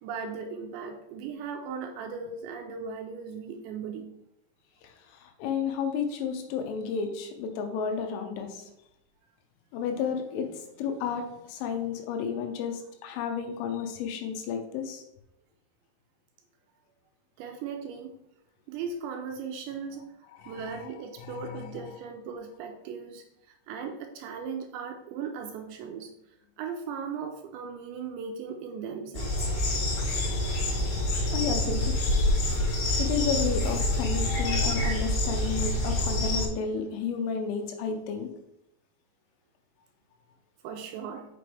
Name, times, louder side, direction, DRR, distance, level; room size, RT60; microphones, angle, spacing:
voice 1, 0.0-4.1 17.4-18.1 18.7-26.1 26.6-29.5 40.6-41.3, right 6 dB, 80° right, 4 dB, 2.7 m, -38 dB
voice 2, 4.8-8.7 9.7-15.0 20.4-20.9 21.2-21.8 30.1-30.9 31.3-32.5 33.0-38.3, left 6 dB, 90° left, 5 dB, 3.5 m, -32 dB
sound 1, 29.1-36.5, left 1 dB, 65° left, 4.3 m, -27 dB
7.5 x 5.9 x 3.4 m, 0.83 s
omnidirectional pair, 5.6 m